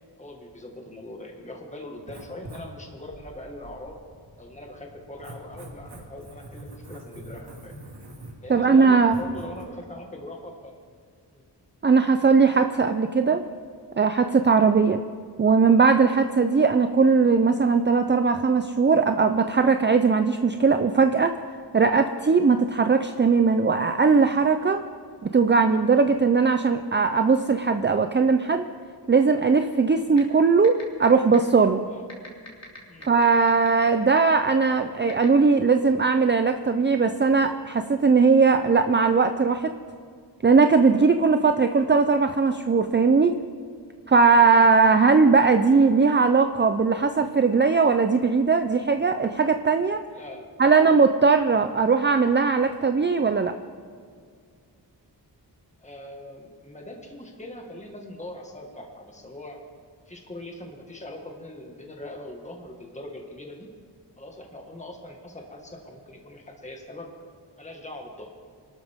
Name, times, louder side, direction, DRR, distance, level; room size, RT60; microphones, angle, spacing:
voice 1, 0.2-4.0 4.4-7.7 8.4-10.8 11.3-11.4 31.9-32.0 32.9-33.1 50.1-51.0 55.8-59.6 60.1-63.7 64.2-67.1 67.6-68.3, left 1 dB, 15° left, 1 dB, 1.8 m, -41 dB
Writing, 2.0-9.6, right 1 dB, 65° right, 2.9 m, -45 dB
voice 2, 8.5-9.2 11.8-13.4 14.0-15.0 15.4-21.4 21.7-24.8 25.2-28.7 29.1-31.8 33.1-39.8 40.4-43.4 44.1-50.0 50.6-53.5, right 4 dB, 25° right, 7 dB, 0.5 m, -19 dB
sound 1, 30.2-30.3 30.6-31.1 31.3-31.4 32.1-33.8 34.2-34.3 35.1-35.3, left 3 dB, 40° left, 3.2 m, -40 dB
25.0 x 13.0 x 3.6 m, 2.1 s
wide cardioid pair, 105°, 42 cm